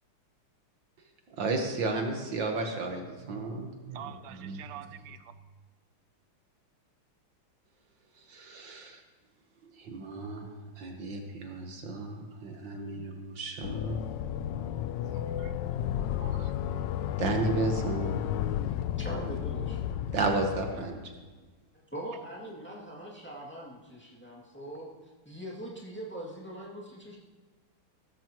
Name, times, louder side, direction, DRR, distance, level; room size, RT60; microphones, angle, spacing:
voice 1, 1.4-4.8 8.3-9.0 9.8-10.5 10.8-14.0 17.2-18.2 20.1-21.1, right 3 dB, 60° right, 4 dB, 1.8 m, -33 dB
voice 2, 3.9-5.2 15.1-15.5 16.2-16.5, right 11 dB, 90° right, 12 dB, 1.6 m, -46 dB
sound 1, 13.6-21.0, left 10 dB, 75° left, 1.0 m, -33 dB
voice 3, 19.0-20.0 21.9-24.9 25.2-27.2, right 1 dB, 5° left, -4 dB, 2.1 m, -41 dB
15.5 x 13.5 x 3.0 m, 1.3 s
omnidirectional pair, 2.4 m